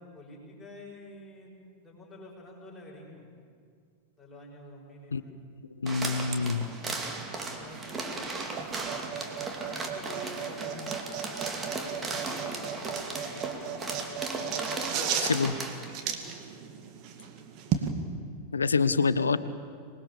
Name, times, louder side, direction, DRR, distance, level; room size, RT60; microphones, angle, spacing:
voice 1, 0.0-3.3 4.2-5.4 7.4-8.6 9.5-10.8 11.6-13.8 14.5-15.4, left 1 dB, 10° left, -3 dB, 5.9 m, -48 dB
voice 2, 5.8-6.7 15.2-15.5 18.5-19.4, left 4 dB, 75° left, 15 dB, 0.8 m, -26 dB
sound 1, 5.9-15.9, right 3 dB, 20° right, 2.6 m, -37 dB
sound 2, 6.2-17.9, right 8 dB, 40° right, 2.1 m, -36 dB
25.5 x 20.5 x 7.1 m, 2.2 s
figure-of-eight pair, 90°, 0 cm